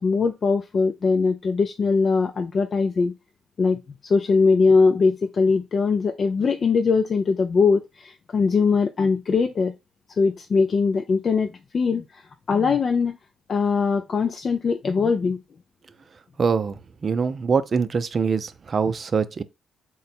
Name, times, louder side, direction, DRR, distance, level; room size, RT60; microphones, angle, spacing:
voice 1, 0.0-3.1 3.6-9.7 10.2-13.2 13.5-15.4, left 4 dB, 50° left, 0.4 m, -21 dB
voice 2, 16.4-19.4, right 5 dB, 45° right, 0.4 m, -24 dB
3.8 x 2.0 x 4.2 m
supercardioid pair, 55°, 0 cm